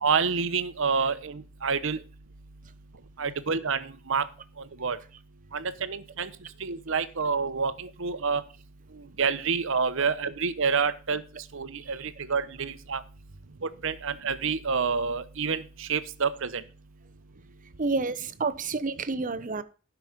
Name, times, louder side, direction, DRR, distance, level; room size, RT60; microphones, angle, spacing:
voice 1, 0.0-2.0 3.2-4.2 4.8-5.0 5.5-6.3 6.6-8.4 9.2-11.2 11.5-12.0 12.3-13.0 13.8-16.5, right 5 dB, 65° right, 1.0 m, -28 dB
voice 2, 17.8-19.6, right 3 dB, 40° right, 0.8 m, -30 dB
11.5 x 6.1 x 5.2 m
head